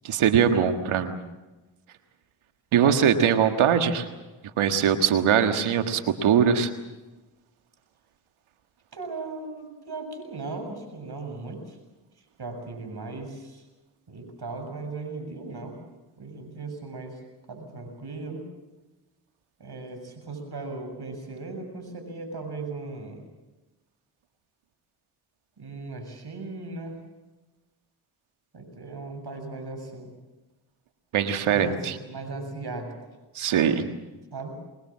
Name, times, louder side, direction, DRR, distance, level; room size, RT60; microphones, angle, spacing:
voice 1, 0.0-1.2 2.7-4.1 4.6-6.7 31.1-32.0 33.3-33.9, right 8 dB, 90° right, 7 dB, 1.7 m, -22 dB
voice 2, 8.9-11.8 12.4-13.6 14.1-15.8 16.2-17.2 17.5-18.4 19.6-23.2 25.6-27.0 28.5-30.1 31.5-32.9 34.3-34.6, right 3 dB, 55° right, 5 dB, 7.4 m, -37 dB
24.5 x 21.0 x 7.4 m, 1.1 s
supercardioid pair, 45°, 47 cm